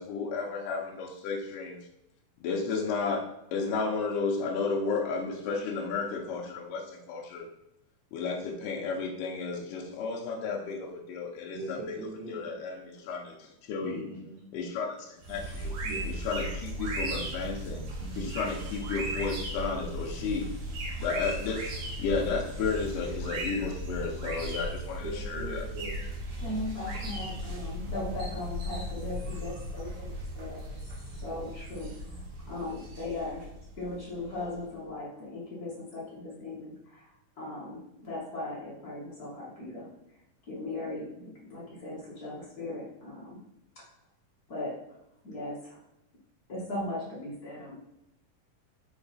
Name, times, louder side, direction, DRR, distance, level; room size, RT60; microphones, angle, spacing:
voice 1, 0.0-1.8 2.4-7.5 8.1-12.0 12.3-13.3 13.7-14.1 14.5-15.8 16.1-17.9 18.2-20.5 21.0-21.7 22.0-25.7, left 4 dB, 75° left, -1 dB, 2.3 m, -33 dB
voice 2, 11.5-12.5 13.8-14.4 15.8-16.1 18.0-18.5 25.0-26.0, right 2 dB, 80° right, -5 dB, 1.2 m, -41 dB
sound 1, 15.2-34.6, right 1 dB, 60° right, 1.5 m, -37 dB
voice 3, 26.4-31.9 32.4-33.4 33.8-39.9 40.5-43.4 43.7-43.9 44.5-45.0 45.2-45.8 46.5-47.8, left 2 dB, 50° left, -6 dB, 1.1 m, -38 dB
5.8 x 4.4 x 4.0 m, 0.84 s
omnidirectional pair, 4.0 m